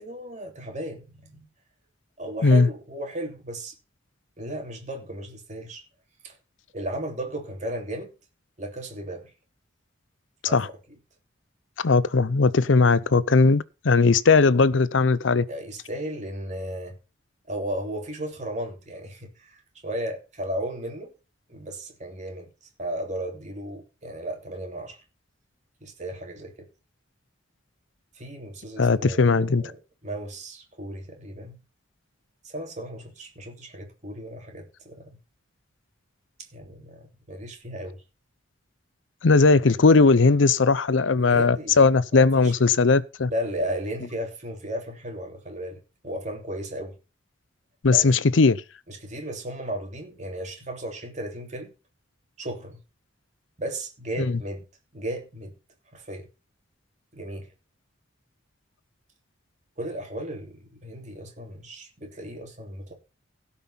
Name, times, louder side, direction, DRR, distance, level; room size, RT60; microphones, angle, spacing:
voice 1, 0.0-1.5 2.2-3.7 4.4-5.8 6.2-6.4 6.7-8.1 8.6-9.3 10.5-10.6 15.5-17.0 17.5-21.1 21.5-22.5 22.8-25.0 25.8-26.7 28.1-29.8 30.0-31.6 32.4-35.2 36.5-38.0 41.2-42.5 43.3-47.0 47.9-48.1 48.9-51.7 52.4-52.8 53.6-54.6 54.9-55.5 55.9-56.3 57.1-57.5 59.8-62.9, right 1 dB, 40° right, 3.0 m, -35 dB
voice 2, 11.8-15.4 28.8-29.6 39.2-43.3 47.8-48.6 54.2-54.3, left 4 dB, 80° left, 0.6 m, -18 dB
17.0 x 5.7 x 5.7 m
head